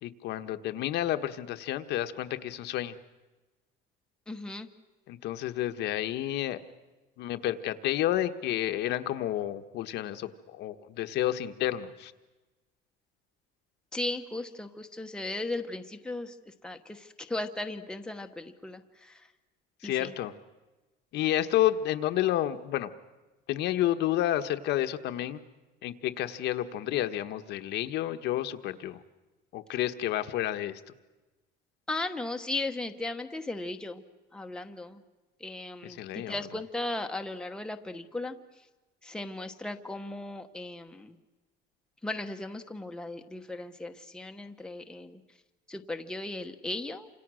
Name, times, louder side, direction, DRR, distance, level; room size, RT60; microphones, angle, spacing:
voice 1, 0.0-3.0 5.1-6.6 7.2-12.1 19.8-20.3 21.1-22.9 23.5-25.4 25.8-29.0 29.5-30.8 35.8-36.4, left 13 dB, 60° left, 8 dB, 1.2 m, -30 dB
voice 2, 4.3-4.7 13.9-19.3 19.8-20.1 31.9-34.0 34.3-35.0 35.4-38.4 39.0-41.2 42.0-45.2 45.7-47.1, left 2 dB, 5° left, 5 dB, 1.1 m, -37 dB
29.5 x 26.5 x 6.3 m, 1.2 s
cardioid pair, 175°, 20 cm